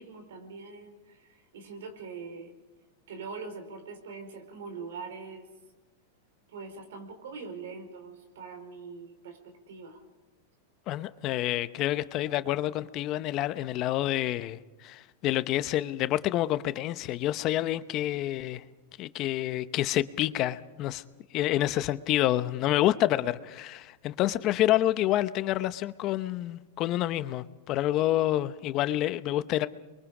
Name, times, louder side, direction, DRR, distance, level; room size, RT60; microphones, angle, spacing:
voice 1, 0.0-2.5 3.1-5.5 6.5-10.0, right 4 dB, 75° right, 4.8 m, -43 dB
voice 2, 10.9-18.6 19.0-21.0 21.3-29.7, left 14 dB, 40° left, 0.8 m, -28 dB
29.0 x 23.0 x 5.0 m
hypercardioid pair, 130°, 0 cm